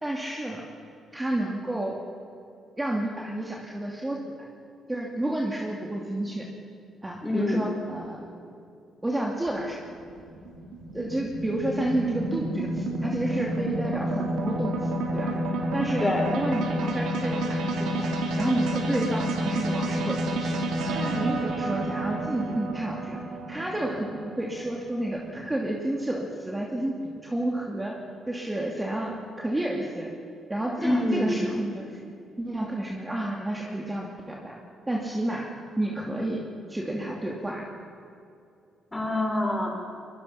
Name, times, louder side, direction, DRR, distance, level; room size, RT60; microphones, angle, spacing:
voice 1, 0.0-0.6 1.1-2.0 2.8-4.5 4.9-6.5 7.0-8.3 9.0-9.8 10.9-15.4 15.7-18.1 18.4-20.6 20.9-23.2 23.5-28.0 28.3-30.1 30.5-32.0 32.4-34.6 34.9-37.7, right 1 dB, 15° right, -1 dB, 2.6 m, -30 dB
voice 2, 7.2-7.6 16.0-16.3 30.8-31.4 38.9-39.7, left 1 dB, 15° left, -1 dB, 6.6 m, -26 dB
sound 1, 9.5-25.9, right 1 dB, 80° right, 3.5 m, -30 dB
23.0 x 22.5 x 5.8 m, 2.6 s
cardioid pair, 90°, 0 cm